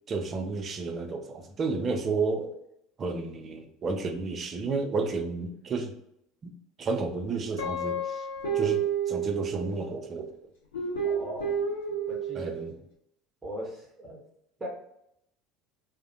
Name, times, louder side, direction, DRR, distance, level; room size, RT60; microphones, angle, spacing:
voice 1, 0.1-2.5 3.0-6.0 6.4-6.5 6.8-8.3 8.5-10.4 12.3-12.7, right 3 dB, 35° right, 6 dB, 0.4 m, -31 dB
Guitar, 7.6-10.0 10.7-12.7, right 5 dB, 75° left, 0.7 m, -30 dB
voice 2, 11.0-11.6 12.1-12.5 13.4-14.2 14.6-14.7, right 1 dB, 20° right, -3 dB, 0.8 m, -39 dB
2.4 x 2.1 x 2.6 m, 0.76 s
figure-of-eight pair, 70°, 0 cm